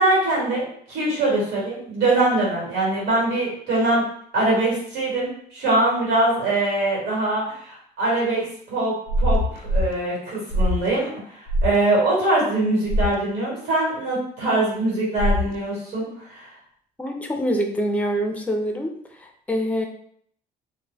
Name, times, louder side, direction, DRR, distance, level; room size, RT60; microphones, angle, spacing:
voice 1, 0.0-4.0 4.3-16.5, right 2 dB, 85° right, -5 dB, 1.3 m, -23 dB
sound 1, 9.1-9.9 10.5-10.9 11.5-11.8 12.9-13.2 15.2-15.6, left 1 dB, 75° left, 0.4 m, -22 dB
voice 2, 17.0-18.9 19.2-19.9, equal, 10° left, 3 dB, 0.4 m, -25 dB
2.2 x 2.1 x 3.2 m, 0.63 s
cardioid pair, 110°, 17 cm